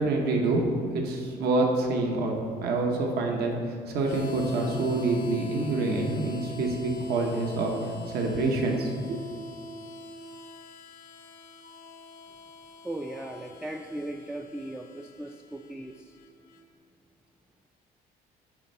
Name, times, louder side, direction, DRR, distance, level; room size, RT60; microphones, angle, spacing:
voice 1, 0.0-2.3 2.6-9.2, right 2 dB, 70° right, 1 dB, 1.1 m, -27 dB
Harmonica, 4.0-16.6, left 3 dB, 70° left, 0.9 m, -45 dB
voice 2, 12.8-16.2, right 1 dB, 5° right, 3 dB, 0.3 m, -38 dB
9.8 x 3.4 x 5.4 m, 2.1 s
cardioid pair, 110°, 17 cm